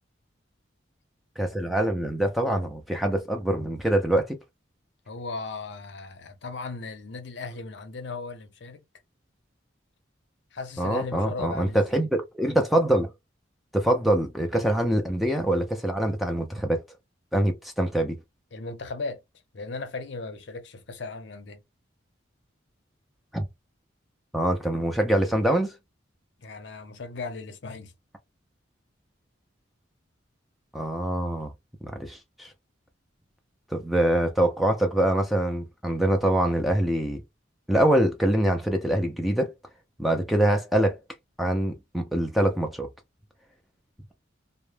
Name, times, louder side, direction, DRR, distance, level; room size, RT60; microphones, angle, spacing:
voice 1, 1.4-4.4 10.8-13.1 13.7-16.8 17.3-18.2 23.3-23.4 24.3-25.7 30.7-31.5 31.8-32.5 33.7-37.2 37.7-39.5 40.0-41.0 41.4-42.9, right 1 dB, ahead, 0.3 m, -24 dB
voice 2, 5.1-8.8 10.5-12.0 14.5-14.7 18.5-19.2 19.5-21.6 26.4-27.9, left 3 dB, 65° left, 0.6 m, -37 dB
2.1 x 2.0 x 3.1 m
head